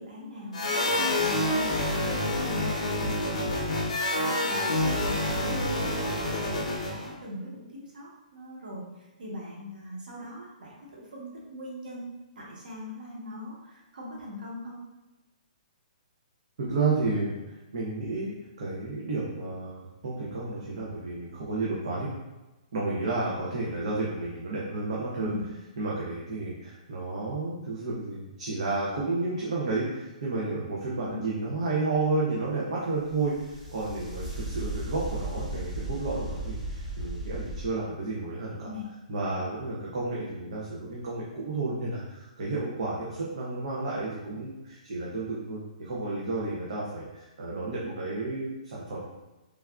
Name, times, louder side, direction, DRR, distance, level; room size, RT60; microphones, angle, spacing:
voice 1, 0.0-12.1 12.4-14.8 25.2-25.4 31.0-31.1 38.6-38.9, left 1 dB, 85° right, -4 dB, 1.1 m, -41 dB
sound 1, 0.5-7.1, left 1 dB, 50° left, 0.7 m, -27 dB
voice 2, 16.6-18.3 18.6-22.1 22.7-25.3 25.8-38.7 39.1-49.1, right 3 dB, 45° right, -5 dB, 0.5 m, -31 dB
sound 2, 33.1-37.7, right 1 dB, 20° right, 1.4 m, -35 dB
3.2 x 2.3 x 2.3 m, 1.1 s
hypercardioid pair, 175°, 4 cm